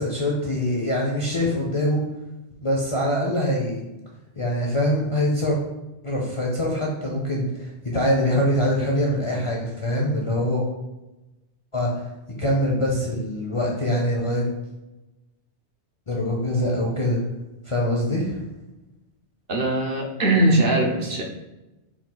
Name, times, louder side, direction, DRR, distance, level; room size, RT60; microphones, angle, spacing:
voice 1, 0.0-2.0 2.6-3.8 4.4-5.6 6.0-10.6 11.7-12.1 12.4-14.4 16.1-17.2 17.6-18.4, equal, 40° left, -3 dB, 0.5 m, -24 dB
voice 2, 19.5-21.2, right 1 dB, 55° right, 1 dB, 0.8 m, -20 dB
4.3 x 2.3 x 3.8 m, 1.0 s
omnidirectional pair, 1.2 m